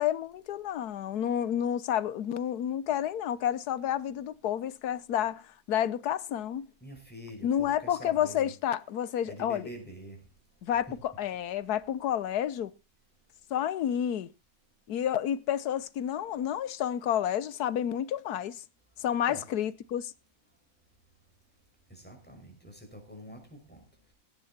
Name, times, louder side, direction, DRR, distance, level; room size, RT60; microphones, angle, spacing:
voice 1, 0.0-6.7 7.4-9.7 10.6-12.7 13.5-14.3 14.9-18.6 19.0-20.1, left 10 dB, 65° left, 1.2 m, -30 dB
voice 2, 6.8-8.5 9.2-10.2 19.3-19.4 21.9-23.8, equal, 5° left, 5.6 m, -45 dB
17.5 x 9.5 x 4.3 m
omnidirectional pair, 2.0 m